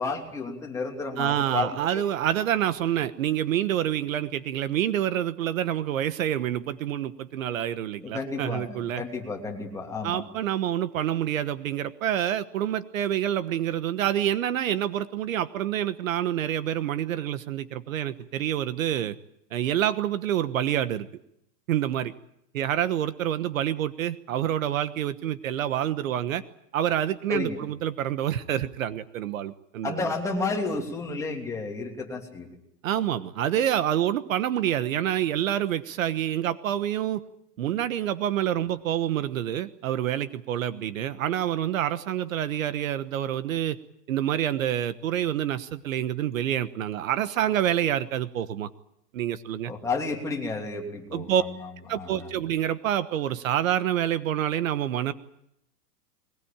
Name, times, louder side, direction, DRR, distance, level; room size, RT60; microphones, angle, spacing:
voice 1, 0.0-2.0 8.0-10.2 27.3-27.6 29.8-32.5 49.6-51.6 51.9-52.3, left 3 dB, 5° left, 0 dB, 3.1 m, -31 dB
voice 2, 1.2-9.0 10.0-19.1 19.5-21.1 21.7-22.1 22.5-26.4 26.7-30.0 32.8-37.2 37.6-43.8 44.1-48.7 49.1-49.7 51.1-51.4 51.9-55.1, right 11 dB, 55° right, 12 dB, 1.3 m, -27 dB
22.0 x 21.0 x 8.9 m, 0.77 s
supercardioid pair, 170°, 47 cm